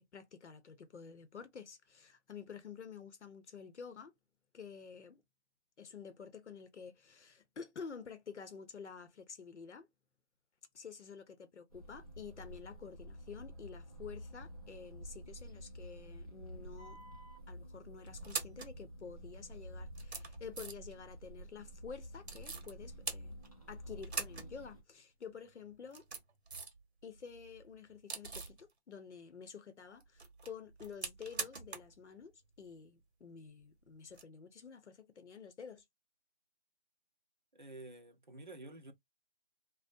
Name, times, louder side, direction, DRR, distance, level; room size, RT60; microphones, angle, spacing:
voice 1, 0.0-4.1 4.5-5.2 5.8-9.9 10.7-17.0 17.5-23.4 23.7-26.1 27.0-32.3 32.6-35.8, left 6 dB, 85° left, 0.7 m, -50 dB
sound 1, 11.7-24.8, equal, 35° left, 0.5 m, -50 dB
sound 2, 16.8-17.4 18.1-18.7 19.5-19.6 19.9-21.0 22.2-22.7 23.0-23.7 24.0-24.5 24.8-24.9 25.7-26.8 27.2-28.6 30.0-32.0 32.2-32.3 34.1-34.2, right 4 dB, 70° right, 0.8 m, -43 dB
voice 2, 37.5-38.9, right 2 dB, 45° right, 0.4 m, -50 dB
2.5 x 2.0 x 2.5 m
figure-of-eight pair, 175°, 34 cm